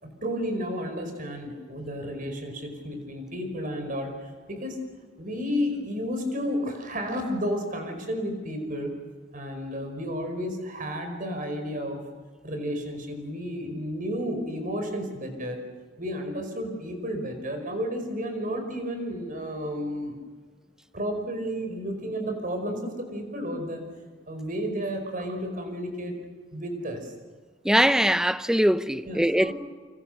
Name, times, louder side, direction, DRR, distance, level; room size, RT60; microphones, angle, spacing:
voice 1, 0.0-4.8 5.2-8.9 9.3-12.0 12.4-15.7 16.0-20.1 20.9-23.8 24.3-26.1 26.5-27.1 29.1-29.5, equal, 45° right, 5.2 m, -32 dB
voice 2, 27.6-29.5, equal, 5° right, 0.7 m, -22 dB
29.0 x 26.0 x 6.7 m
head